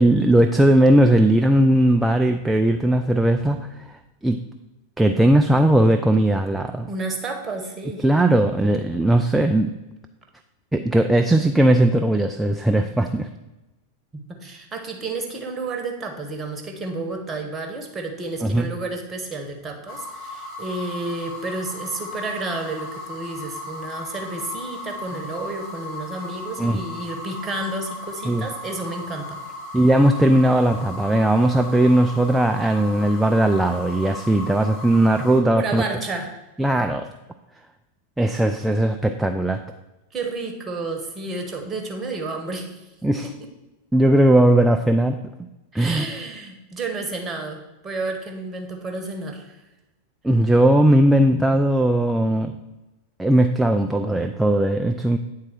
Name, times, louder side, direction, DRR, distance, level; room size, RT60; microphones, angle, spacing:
voice 1, 0.0-3.8 4.2-4.4 5.0-6.9 8.0-9.7 10.7-13.3 18.4-18.7 26.6-26.8 28.2-28.5 29.7-35.8 36.6-37.0 38.2-39.6 43.0-43.3 43.9-45.2 45.7-46.0 50.2-52.6 53.2-55.2, right 1 dB, 5° right, 5 dB, 0.3 m, -18 dB
voice 2, 6.9-8.0 14.1-29.4 35.6-36.4 40.1-42.8 45.7-49.6, right 3 dB, 20° right, 3 dB, 1.1 m, -31 dB
sound 1, 19.9-35.4, left 2 dB, 45° left, 1.3 m, -36 dB
8.8 x 3.7 x 4.4 m, 1.0 s
figure-of-eight pair, 90°, 0 cm